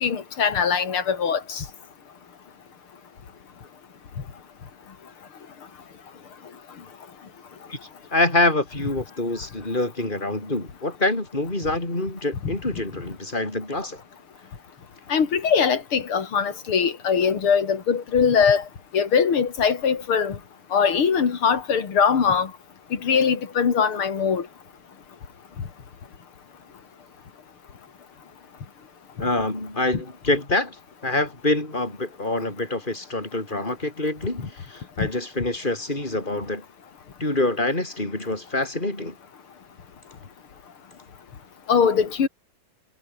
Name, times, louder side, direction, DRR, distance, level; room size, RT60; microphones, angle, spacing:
voice 1, 0.0-1.6 12.4-12.5 15.1-18.6 18.9-20.4 20.7-22.5 23.0-24.4 41.7-42.3, left 6 dB, 75° left, 3.4 m, -21 dB
voice 2, 8.1-14.0 29.2-30.8 31.0-36.6 37.2-39.2, left 2 dB, 20° left, 6.1 m, -26 dB
omnidirectional pair, 2.4 m